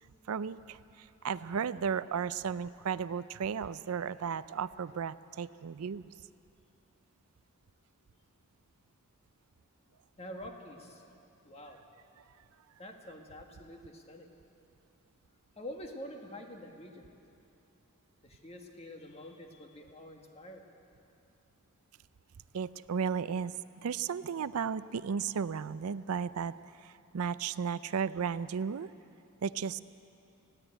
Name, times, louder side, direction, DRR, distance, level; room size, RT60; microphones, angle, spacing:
voice 1, 0.3-6.1 22.5-23.5 23.8-26.5 26.8-28.9 29.4-29.8, right 6 dB, 75° right, 15 dB, 0.4 m, -34 dB
voice 2, 10.2-11.0 11.4-11.8 12.8-14.3 15.6-17.1 18.2-20.6, left 1 dB, 30° left, 3 dB, 1.7 m, -47 dB
19.5 x 15.5 x 9.0 m, 2.7 s
head